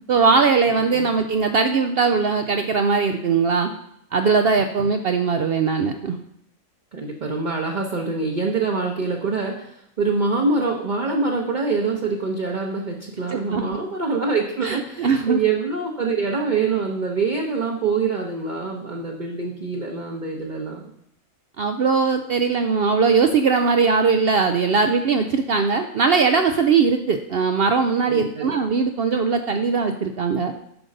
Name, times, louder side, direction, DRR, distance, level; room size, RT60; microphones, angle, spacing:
voice 1, 0.1-3.7 4.1-6.2 13.3-13.6 14.6-15.4 21.6-30.5, right 5 dB, 75° right, 6 dB, 0.5 m, -20 dB
voice 2, 6.9-20.8 28.1-28.5, right 4 dB, 35° right, -1 dB, 0.9 m, -25 dB
10.5 x 3.8 x 6.5 m, 0.75 s
omnidirectional pair, 1.6 m